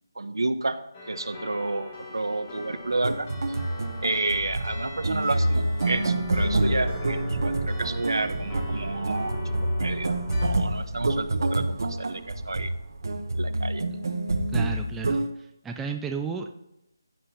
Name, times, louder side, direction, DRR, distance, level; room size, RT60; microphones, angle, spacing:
voice 1, 0.2-0.8 1.1-3.3 4.0-9.4 9.6-12.7 13.3-13.9, right 2 dB, 90° right, 10 dB, 1.1 m, -30 dB
sound 1, 0.9-10.5, left 2 dB, 15° left, 1.4 m, -41 dB
sound 2, 2.7-13.7, right 3 dB, 30° right, 0.9 m, -39 dB
sound 3, 2.9-15.3, right 1 dB, 60° right, 1.1 m, -27 dB
voice 2, 14.5-16.5, right 5 dB, 5° right, 3 dB, 0.3 m, -33 dB
15.0 x 7.9 x 2.8 m, 0.85 s
figure-of-eight pair, 170°, 2 cm